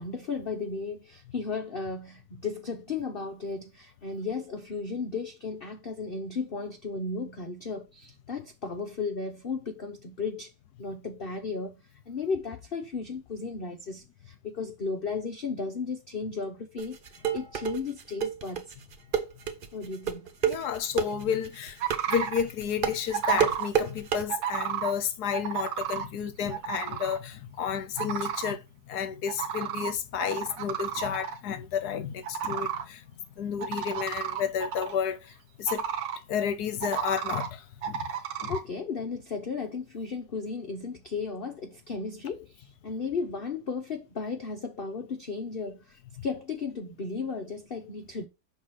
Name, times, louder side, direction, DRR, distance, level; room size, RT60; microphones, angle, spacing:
voice 1, 0.0-10.5 10.8-17.0 17.3-18.7 19.7-20.2 38.5-48.3, left 4 dB, 50° left, 0.7 m, -35 dB
sound 1, 16.8-24.2, right 8 dB, 90° right, 0.4 m, -29 dB
voice 2, 20.4-21.8 22.1-33.0 33.4-35.8 36.3-38.1 38.4-38.6, left 8 dB, 65° left, 1.2 m, -31 dB
sound 2, 21.8-22.4 23.1-23.7 24.3-24.9 25.3-26.0 26.5-27.2 28.0-28.5 29.3-29.9 30.2-31.4 32.2-32.8 33.6-34.9 35.7-36.2 36.8-37.5 37.8-38.6, right 9 dB, 75° right, 1.7 m, -32 dB
6.3 x 3.9 x 5.8 m
omnidirectional pair, 2.1 m